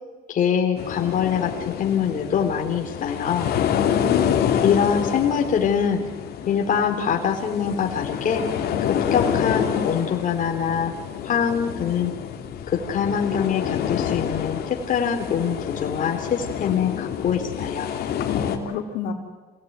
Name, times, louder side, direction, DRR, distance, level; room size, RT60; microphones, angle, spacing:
voice 1, 0.3-3.5 4.6-6.0 6.4-8.4 9.1-10.9 11.2-12.1 12.7-17.9, left 7 dB, 50° left, 2 dB, 3.4 m, -24 dB
sound 1, 0.8-18.6, left 9 dB, 65° left, 2.8 m, -27 dB
voice 2, 3.6-4.2 18.2-19.1, left 7 dB, 90° left, 1 dB, 4.2 m, -29 dB
26.0 x 18.0 x 9.5 m, 1.3 s
cardioid pair, 110°, 17 cm